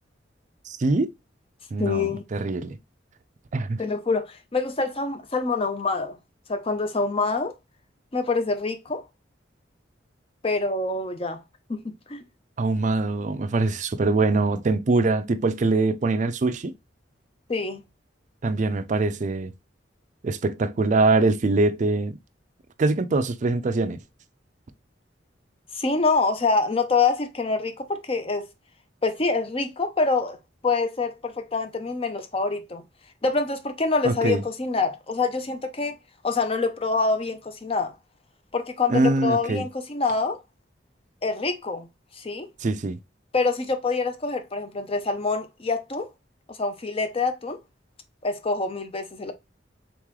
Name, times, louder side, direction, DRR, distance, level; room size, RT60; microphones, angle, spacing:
voice 1, 0.7-1.1 1.7-2.8 3.5-3.8 12.6-16.7 18.4-19.5 20.2-22.2 22.8-24.0 34.0-34.4 38.9-39.6 42.6-43.0, right 3 dB, 40° right, 0.4 m, -23 dB
voice 2, 1.8-2.2 3.8-6.2 6.5-7.5 8.1-9.0 10.4-11.4 11.7-11.8 12.1-12.2 17.5-17.8 25.7-28.5 29.0-30.4 30.6-32.8 33.2-36.0 36.2-37.9 38.5-40.4 41.2-41.9 42.2-42.5 43.3-46.1 46.5-47.6 48.2-49.3, left 3 dB, 30° left, 0.6 m, -25 dB
3.7 x 3.6 x 3.1 m
head